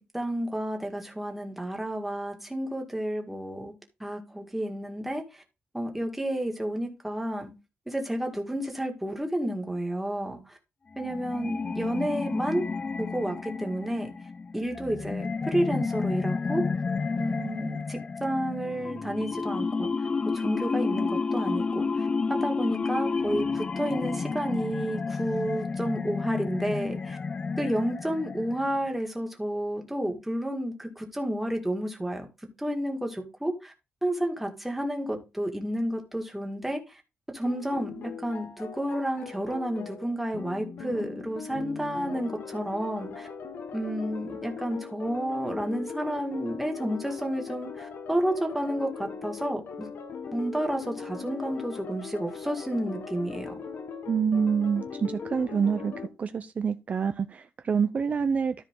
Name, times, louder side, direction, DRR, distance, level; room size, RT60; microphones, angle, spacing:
voice 1, 0.0-3.7 4.0-5.2 5.7-7.5 7.9-10.4 11.0-12.7 13.0-14.1 14.5-16.6 17.2-19.9 20.3-21.9 22.4-27.2 27.6-32.3 32.6-33.7 34.0-36.8 37.3-43.3 43.7-49.9 50.3-53.5, right 1 dB, 5° right, 2.0 m, -31 dB
sound 1, 10.9-28.9, left 4 dB, 30° left, 0.3 m, -31 dB
sound 2, 37.4-56.1, left 5 dB, 70° left, 1.3 m, -40 dB
voice 2, 54.1-55.9 56.2-58.5, right 6 dB, 45° right, 0.5 m, -26 dB
13.5 x 4.8 x 3.7 m
wide cardioid pair, 145°, 4 cm